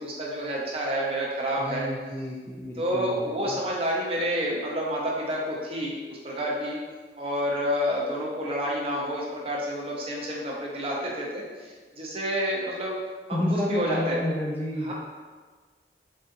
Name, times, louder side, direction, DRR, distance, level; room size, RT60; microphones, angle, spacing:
voice 1, 0.0-1.9 2.8-6.8 7.2-13.0 13.3-14.2 14.8-14.9, equal, 35° right, -3 dB, 0.7 m, -29 dB
voice 2, 1.6-3.6 13.3-14.9, left 1 dB, 15° left, -4 dB, 0.4 m, -30 dB
3.9 x 3.4 x 2.7 m, 1.4 s
head